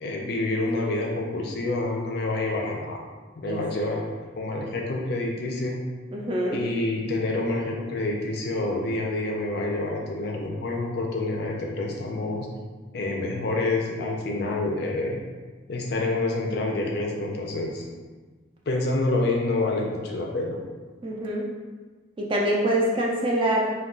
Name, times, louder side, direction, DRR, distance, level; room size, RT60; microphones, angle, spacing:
voice 1, 0.0-3.0 3.4-4.0 4.4-5.8 6.5-12.5 12.9-15.2 15.7-17.9 18.7-20.6, left 2 dB, 55° left, 0 dB, 0.4 m, -27 dB
voice 2, 6.1-6.6 21.0-21.4 22.2-23.7, right 1 dB, 25° right, -2 dB, 0.3 m, -25 dB
2.3 x 2.2 x 3.7 m, 1.4 s
head